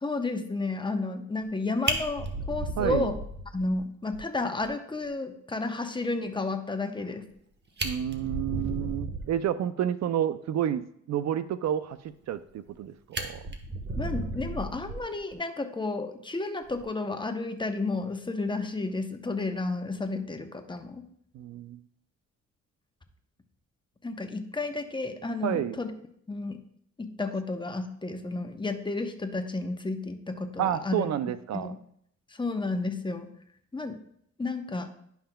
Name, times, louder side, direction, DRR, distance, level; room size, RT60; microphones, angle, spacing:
voice 1, 0.0-3.2 3.5-7.3 14.0-21.0 24.0-25.9 26.3-26.6 27.0-31.1 31.5-31.8 32.3-33.3 33.7-34.0 34.4-34.9, left 3 dB, 15° left, 7 dB, 0.8 m, -32 dB
Fire, 1.4-1.5 1.8-3.8 4.1-4.2 4.6-4.7 5.1-5.2 7.3-7.4 7.7-9.4 12.2-12.8 13.1-15.3 16.6-16.8, right 2 dB, 35° right, 1.2 m, -34 dB
voice 2, 2.8-3.1 7.8-12.0 12.3-13.4 21.3-21.8 25.4-25.8 30.6-31.7, right 10 dB, 60° right, 13 dB, 0.5 m, -30 dB
11.5 x 5.7 x 2.2 m, 0.69 s
cardioid pair, 90°, 30 cm